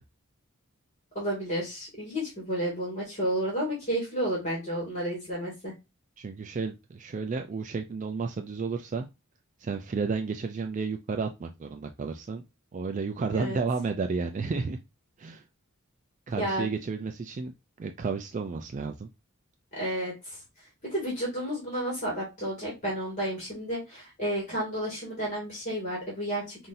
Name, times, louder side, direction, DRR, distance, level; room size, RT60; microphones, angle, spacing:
voice 1, 1.2-5.7 13.3-13.6 16.4-16.7 19.7-20.1 20.8-26.7, right 1 dB, 35° left, -3 dB, 2.1 m, -31 dB
voice 2, 6.2-9.1 9.6-12.4 12.7-14.8 15.2-15.4 16.3-17.5 17.8-19.1, right 4 dB, 35° right, 5 dB, 0.3 m, -32 dB
5.6 x 2.7 x 2.5 m, 0.24 s
head